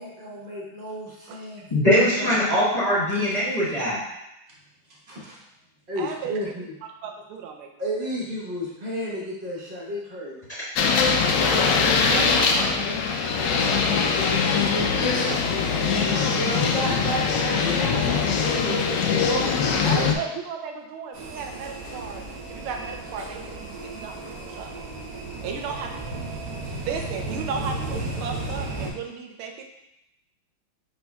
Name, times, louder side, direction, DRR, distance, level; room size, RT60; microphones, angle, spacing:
voice 1, 0.0-2.3 3.1-3.4 5.1-5.4 5.9-6.7 7.8-10.4 13.6-14.1 16.4-20.1, equal, 35° right, -5 dB, 0.9 m, -32 dB
voice 2, 1.7-4.0, equal, 25° left, -9 dB, 1.1 m, -21 dB
voice 3, 6.0-6.5 7.0-7.7 12.1-12.8 15.0-15.5 19.8-22.2 22.5-24.7 25.4-26.3 26.8-29.6, right 6 dB, 85° right, 3 dB, 1.5 m, -34 dB
sound 1, 10.8-20.1, left 5 dB, 75° left, 1.0 m, -22 dB
sound 2, 21.1-28.9, right 2 dB, 60° right, 1.0 m, -34 dB
5.3 x 4.4 x 2.3 m, 0.86 s
omnidirectional pair, 2.3 m